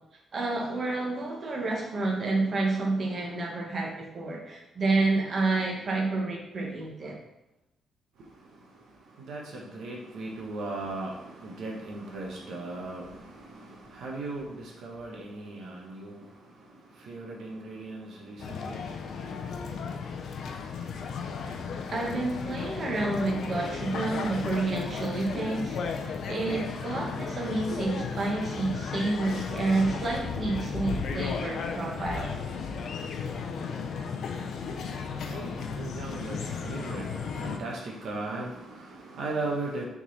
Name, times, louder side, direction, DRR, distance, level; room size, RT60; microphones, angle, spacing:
voice 1, 0.3-7.2 21.9-25.8 26.2-32.4, right 3 dB, 30° right, -1 dB, 1.4 m, -29 dB
voice 2, 8.2-19.8 34.8-39.9, right 2 dB, 65° right, -2 dB, 1.2 m, -38 dB
sound 1, 18.4-37.6, left 5 dB, 55° left, 0.6 m, -34 dB
6.0 x 3.9 x 4.1 m, 0.88 s
cardioid pair, 165°, 0 cm